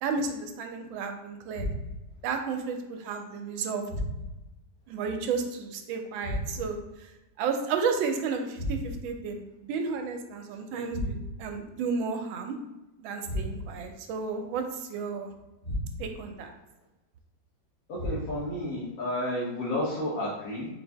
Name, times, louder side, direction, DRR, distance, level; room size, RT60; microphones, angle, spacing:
voice 1, 0.0-1.7 2.2-3.8 4.9-7.1 7.4-12.5 13.0-15.3 16.0-16.5, right 5 dB, 90° right, 5 dB, 1.4 m, -32 dB
sound 1, 1.5-2.2 3.9-4.5 6.2-6.9 8.5-9.2 10.9-11.5 13.2-13.9 15.6-16.3 17.9-18.6, equal, 35° left, 0.7 m, -34 dB
voice 2, 17.9-20.7, left 1 dB, 55° left, -7 dB, 1.1 m, -31 dB
4.3 x 2.6 x 3.3 m, 0.99 s
omnidirectional pair, 2.1 m